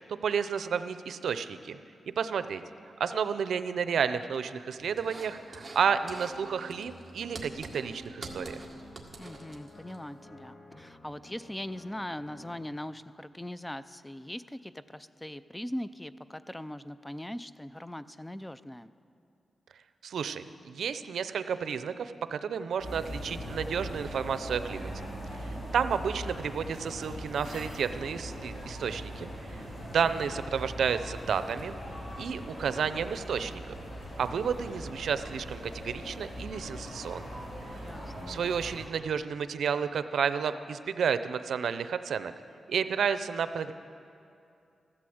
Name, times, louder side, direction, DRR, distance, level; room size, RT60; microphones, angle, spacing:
voice 1, 0.2-1.8 2.2-2.6 3.0-8.6 20.0-25.1 25.4-31.7 32.2-33.6 34.2-37.4 37.7-37.8 38.3-42.3 42.7-43.7, right 7 dB, 85° right, 11 dB, 0.5 m, -31 dB
sound 1, 4.8-12.7, left 1 dB, 35° left, 1.5 m, -52 dB
sound 2, 5.0-5.8 6.1-6.4 6.7-10.0, right 3 dB, 25° right, 1.7 m, -45 dB
voice 2, 9.2-18.9 37.8-38.4, left 1 dB, 10° left, 14 dB, 0.4 m, -40 dB
sound 3, 22.8-38.9, equal, 60° left, 4.0 m, -40 dB
15.0 x 12.0 x 7.8 m, 2.6 s
wide cardioid pair, 120°, 0 cm